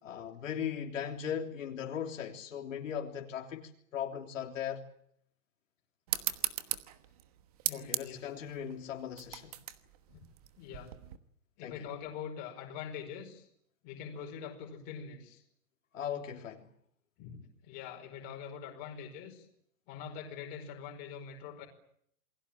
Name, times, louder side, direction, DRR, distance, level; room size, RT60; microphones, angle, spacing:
voice 1, 0.0-4.9 7.7-9.5 11.6-11.8 15.9-16.7, left 8 dB, 60° left, 3.3 m, -38 dB
sound 1, 6.1-11.2, right 13 dB, 25° right, 1.2 m, -38 dB
voice 2, 7.6-8.3 10.1-10.2 10.5-10.9 11.6-13.5 13.8-15.4 17.2-19.5 19.9-21.7, left 7 dB, 20° left, 5.1 m, -44 dB
28.5 x 21.0 x 8.9 m
hypercardioid pair, 180°, 43 cm